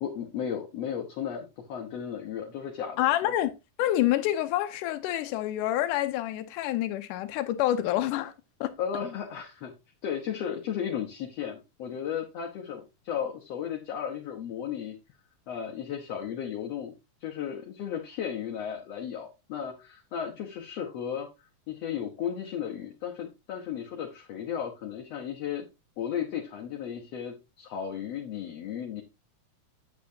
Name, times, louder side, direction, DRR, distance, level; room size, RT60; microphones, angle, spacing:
voice 1, 0.0-3.3 8.8-9.7 10.0-15.0 15.5-16.9 17.2-21.3 21.7-25.7 26.0-29.0, left 8 dB, 60° left, 2.0 m, -35 dB
voice 2, 3.0-3.5 3.8-8.3 8.6-8.7, left 13 dB, 80° left, 2.2 m, -27 dB
8.6 x 8.5 x 2.8 m
omnidirectional pair, 3.7 m